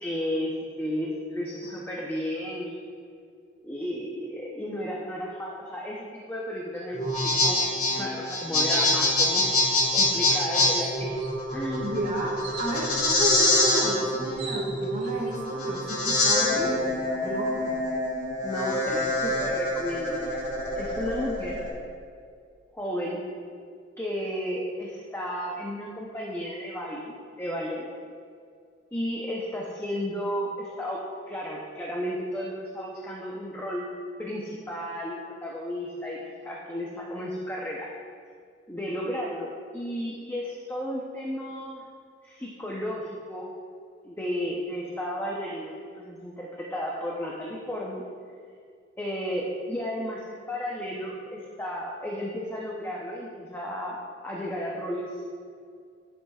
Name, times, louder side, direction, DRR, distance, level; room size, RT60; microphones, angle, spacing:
voice 1, 0.0-2.8 3.6-9.5 9.9-11.1 11.5-12.0 16.3-16.7 18.4-20.4 20.8-21.6 22.7-23.2 24.0-27.9 28.9-33.9 34.2-37.9 38.7-41.8 42.2-43.5 44.0-48.0 49.0-54.0 54.2-55.3, equal, 10° left, -4 dB, 0.7 m, -33 dB
sound 1, 6.9-21.7, left 2 dB, 45° left, 2.1 m, -25 dB
sound 2, 9.8-10.0 10.4-10.5 10.8-11.3 12.4-12.7 13.9-14.0 14.2-15.1, right 4 dB, 90° right, 1.2 m, -41 dB
voice 2, 11.8-17.8, right 1 dB, 45° right, -3 dB, 1.8 m, -32 dB
11.5 x 8.2 x 2.4 m, 2.2 s
head